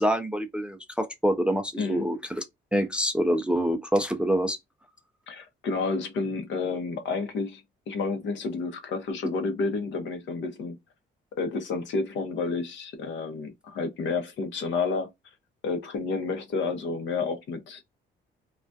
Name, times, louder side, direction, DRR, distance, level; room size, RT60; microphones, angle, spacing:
voice 1, 0.0-2.4 2.7-4.6, equal, 5° right, 0.3 m, -26 dB
voice 2, 1.8-2.1 5.3-7.6 7.9-10.8 11.4-15.1 15.6-17.8, left 4 dB, 70° left, 0.7 m, -30 dB
2.3 x 2.2 x 2.5 m
cardioid pair, 90°, 20 cm